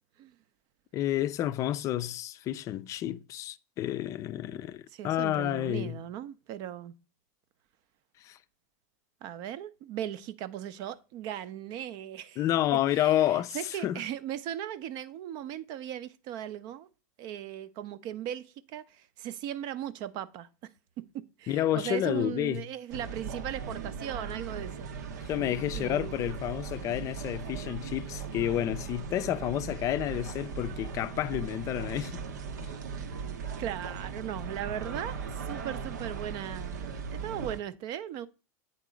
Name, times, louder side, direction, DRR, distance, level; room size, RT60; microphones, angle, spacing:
voice 1, 0.9-6.0 8.2-8.4 12.4-14.0 21.5-22.6 25.3-32.3 32.6-32.7, left 12 dB, 35° left, 0.4 m, -30 dB
voice 2, 4.9-6.9 9.2-12.4 12.9-16.9 17.2-20.5 21.1-24.9 25.2-25.3 25.7-26.3 32.9-33.0 33.6-38.3, right 11 dB, 50° right, 0.5 m, -38 dB
sound 1, 22.9-37.6, right 5 dB, 85° right, 0.8 m, -38 dB
8.3 x 3.7 x 5.0 m
supercardioid pair, 120°, 9 cm